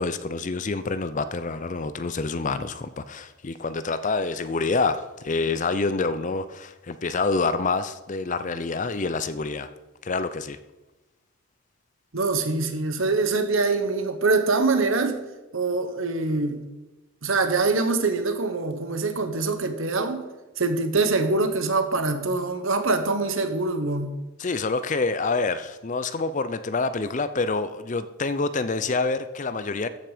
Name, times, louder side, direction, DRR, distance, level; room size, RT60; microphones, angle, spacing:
voice 1, 0.0-9.7 10.0-10.6 24.4-29.9, left 3 dB, 35° left, 12 dB, 0.5 m, -27 dB
voice 2, 12.1-15.2 15.5-16.6 17.2-20.2 20.6-24.1, right 3 dB, 65° right, 8 dB, 1.1 m, -24 dB
14.0 x 6.3 x 5.0 m, 1.1 s
head